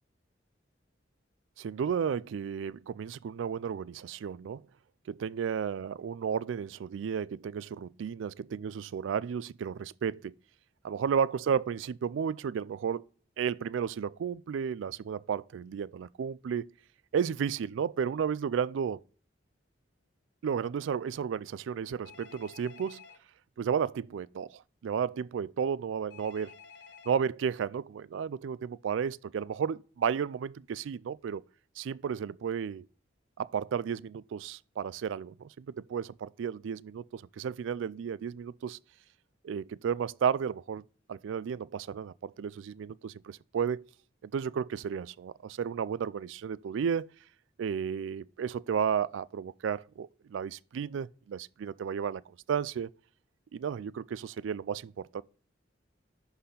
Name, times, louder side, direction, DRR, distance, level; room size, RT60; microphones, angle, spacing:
voice 1, 1.6-4.6 5.1-10.3 10.8-13.0 13.4-16.7 17.1-19.0 20.4-23.0 23.6-26.5 27.1-31.4 31.8-32.8 33.4-38.8 39.4-43.9 44.2-47.1 47.6-52.2 52.5-52.9 53.5-55.2, right 7 dB, 80° right, 0.3 m, -33 dB
Telephone, 22.0-23.2 26.1-27.2, left 6 dB, 60° left, 1.1 m, -52 dB
11.0 x 4.2 x 3.8 m
head